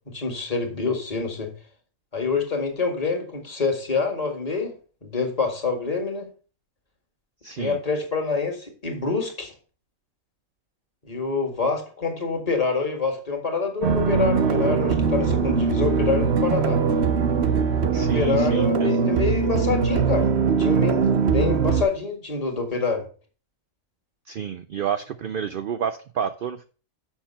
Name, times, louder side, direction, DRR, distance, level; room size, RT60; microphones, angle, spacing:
voice 1, 0.1-1.5 2.1-4.7 5.0-6.3 7.6-9.5 11.0-16.8 17.9-20.3 20.6-23.1, left 4 dB, 25° left, 1.7 m, -26 dB
voice 2, 7.4-7.8 17.9-19.0 24.3-26.7, right 8 dB, 75° right, 0.4 m, -29 dB
sound 1, 13.8-21.8, right 5 dB, 55° right, 1.0 m, -21 dB
7.2 x 5.8 x 5.5 m
omnidirectional pair, 1.5 m